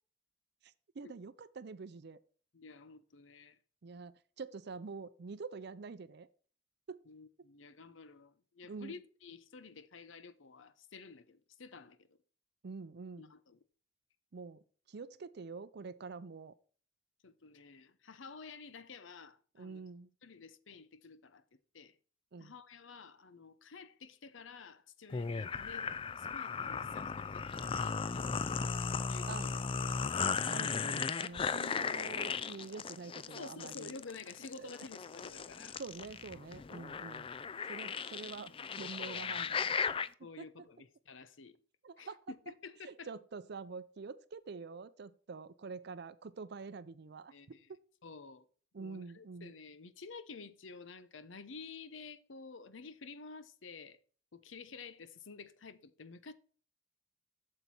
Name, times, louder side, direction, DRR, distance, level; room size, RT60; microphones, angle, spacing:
voice 1, 0.6-2.2 3.8-6.3 6.9-7.0 8.7-8.9 12.6-13.3 14.3-14.6 14.9-16.5 19.6-20.1 22.3-22.5 29.3-29.5 30.5-34.0 34.6-34.7 35.8-37.3 37.7-39.8 40.4-40.5 41.8-42.2 42.8-47.3 48.7-49.5, right 4 dB, 60° right, 0.5 m, -46 dB
voice 2, 2.5-3.6 7.1-12.2 13.2-13.6 17.2-19.8 20.2-21.4 21.7-22.0 22.4-28.3 29.1-29.6 29.9-30.0 33.3-35.8 39.7-39.9 40.2-41.6 42.0-43.1 47.3-47.7 48.0-48.4 48.8-54.0 54.3-56.3, left 4 dB, 85° left, 0.8 m, -51 dB
sound 1, 25.1-40.1, left 5 dB, 30° left, 0.4 m, -37 dB
8.2 x 6.7 x 4.3 m
head